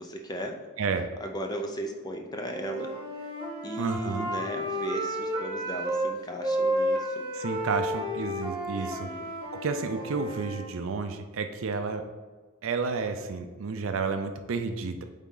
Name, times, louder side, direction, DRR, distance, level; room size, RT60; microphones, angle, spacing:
voice 1, 0.0-0.6 1.2-3.3 3.6-7.3 8.7-9.3, equal, 20° left, 3 dB, 0.5 m, -37 dB
Wind instrument woodwind instrument, 2.5-6.1 6.4-10.7, right 1 dB, 25° right, 1.4 m, -32 dB
voice 2, 3.8-4.3 7.3-9.1 9.6-12.0 12.6-15.0, right 4 dB, 60° right, 7 dB, 0.4 m, -31 dB
8.2 x 3.6 x 3.9 m, 1.4 s
head